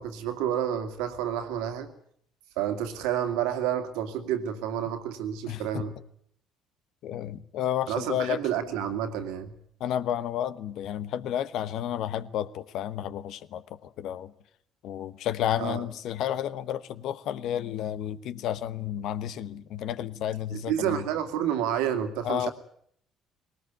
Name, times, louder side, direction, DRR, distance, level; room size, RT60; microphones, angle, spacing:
voice 1, 0.0-1.9 2.6-5.9 7.9-9.5 15.6-15.8 20.5-22.5, right 10 dB, 75° right, 2.3 m, -29 dB
voice 2, 5.5-5.8 7.0-8.4 9.8-14.3 14.8-21.0 22.2-22.5, left 10 dB, 65° left, 1.1 m, -31 dB
20.5 x 19.0 x 9.3 m
hypercardioid pair, 55°, 0 cm